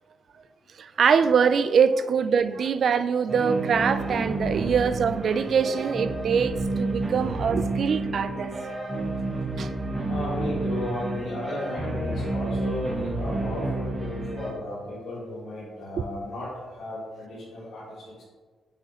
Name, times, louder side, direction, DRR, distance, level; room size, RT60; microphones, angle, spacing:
voice 1, 0.8-8.5 9.6-9.7 16.0-16.1, right 6 dB, 50° right, 11 dB, 0.3 m, -23 dB
sound 1, 3.3-14.5, right 2 dB, 25° right, 0.8 m, -30 dB
voice 2, 10.1-18.2, left 1 dB, 70° left, -8 dB, 1.8 m, -34 dB
7.6 x 4.7 x 3.0 m, 1.4 s
cardioid pair, 155°, 0 cm